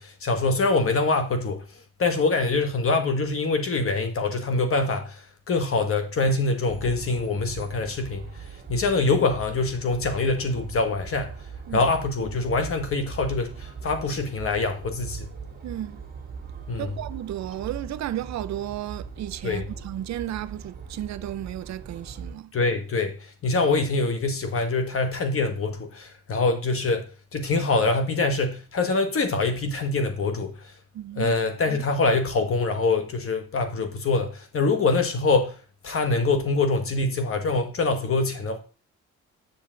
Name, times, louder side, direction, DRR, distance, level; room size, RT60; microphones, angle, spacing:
voice 1, 0.0-1.6 2.0-8.2 8.7-11.3 11.7-15.3 16.7-16.9 19.4-19.6 22.5-27.1 27.3-30.6 31.2-35.6 35.8-38.6, left 3 dB, 45° left, 1.5 m, -24 dB
sound 1, 6.7-22.3, right 6 dB, 30° right, 1.8 m, -40 dB
voice 2, 15.6-16.0 16.8-22.5 30.9-31.3, right 12 dB, 65° right, 0.5 m, -33 dB
7.8 x 6.2 x 3.7 m
cardioid pair, 90°, 30 cm